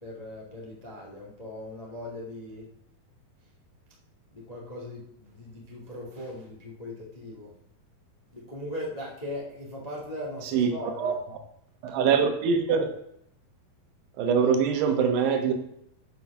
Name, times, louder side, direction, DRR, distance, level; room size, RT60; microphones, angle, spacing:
voice 1, 0.0-2.7 4.3-7.5 8.3-11.2, left 1 dB, 20° left, -2 dB, 0.9 m, -39 dB
voice 2, 11.8-12.9 14.2-15.5, right 6 dB, 80° right, 5 dB, 3.3 m, -23 dB
7.9 x 7.7 x 5.8 m, 0.74 s
omnidirectional pair, 4.7 m